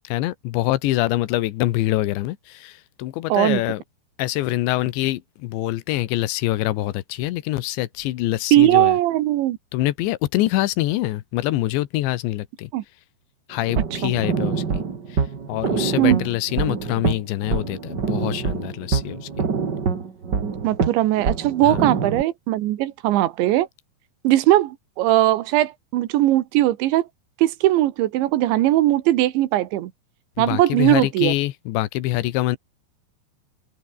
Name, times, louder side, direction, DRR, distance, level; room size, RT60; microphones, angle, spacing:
voice 1, 0.1-3.8 4.2-9.0 9.7-12.7 13.5-14.8 15.5-19.5 21.6-21.9 30.4-32.6, left 16 dB, 70° left, 3.1 m, -25 dB
voice 2, 3.3-3.6 8.5-9.6 12.7-12.8 14.0-14.1 16.0-16.2 20.6-23.7 24.2-27.1 27.4-29.9 30.4-31.3, right 14 dB, 75° right, 3.4 m, -19 dB
sound 1, 13.7-22.2, right 5 dB, 45° right, 1.3 m, -25 dB
omnidirectional pair, 5.8 m